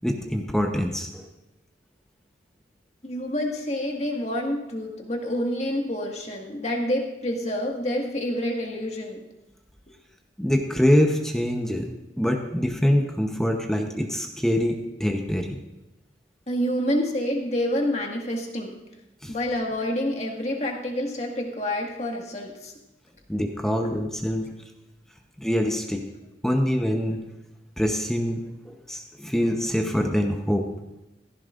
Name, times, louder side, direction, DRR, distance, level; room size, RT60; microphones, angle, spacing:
voice 1, 0.0-1.3 10.4-11.9 12.2-15.6 19.2-19.3 23.3-24.5 25.4-26.0 26.4-27.2 27.8-30.7, equal, 5° left, 3 dB, 0.8 m, -24 dB
voice 2, 3.0-9.2 16.5-18.7 19.3-22.7 23.7-24.0, left 1 dB, 35° left, 1 dB, 1.8 m, -28 dB
16.0 x 14.5 x 2.5 m, 0.94 s
head